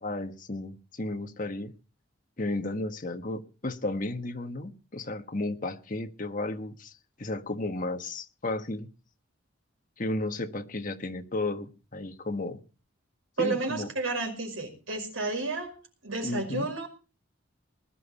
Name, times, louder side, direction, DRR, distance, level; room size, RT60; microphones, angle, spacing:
voice 1, 0.0-1.7 2.4-6.9 7.2-8.9 10.0-12.6 13.4-13.9 16.2-16.7, left 2 dB, 40° left, 6 dB, 1.4 m, -33 dB
voice 2, 13.4-15.8 16.0-16.9, right 3 dB, 85° right, 4 dB, 5.5 m, -31 dB
20.0 x 12.0 x 4.2 m, 0.34 s
head